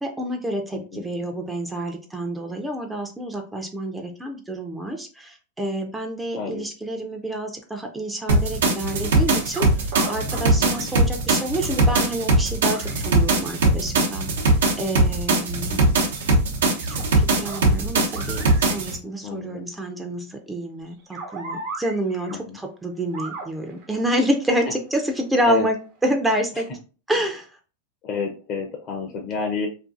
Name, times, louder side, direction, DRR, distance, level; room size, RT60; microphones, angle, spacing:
voice 1, 0.0-15.9 16.9-25.8 26.0-26.7 27.1-27.5, right 1 dB, 10° right, 3 dB, 0.4 m, -28 dB
voice 2, 0.7-1.1 6.3-6.6 10.6-10.9 15.6-15.9 19.2-19.7 22.3-22.6 25.5-25.7 28.0-29.7, left 5 dB, 40° left, 3 dB, 0.5 m, -30 dB
sound 1, 8.3-18.9, right 2 dB, 90° right, 0.7 m, -21 dB
sound 2, 8.9-9.7 9.9-10.4 10.7-10.8 11.6-11.7 12.6-13.1 16.0-16.1 16.6-17.0 17.4-17.6 18.1-18.8 20.9-22.4 23.1-25.1 25.8-26.0 26.3-26.4, right 3 dB, 55° right, 0.7 m, -37 dB
2.5 x 2.5 x 2.4 m, 0.36 s
hypercardioid pair, 115°, 0 cm